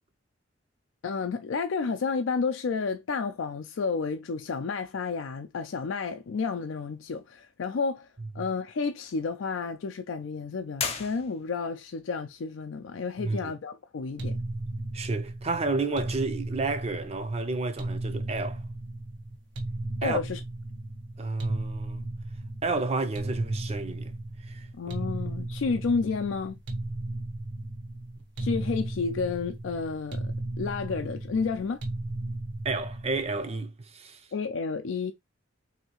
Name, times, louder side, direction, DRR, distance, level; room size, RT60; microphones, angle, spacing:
voice 1, 1.0-8.1 8.3-14.4 20.0-20.4 24.7-26.6 28.4-31.8 34.3-35.1, left 5 dB, 80° left, 0.4 m, -31 dB
sound 1, 10.7-11.8, left 6 dB, 30° left, 0.6 m, -34 dB
voice 2, 13.2-13.5 14.9-18.6 20.0-20.2 21.2-22.1 22.6-24.1 24.4-24.9 32.6-34.2, right 3 dB, 35° right, 0.5 m, -31 dB
sound 2, 14.2-33.5, right 1 dB, 65° right, 0.9 m, -35 dB
3.2 x 2.8 x 2.9 m
head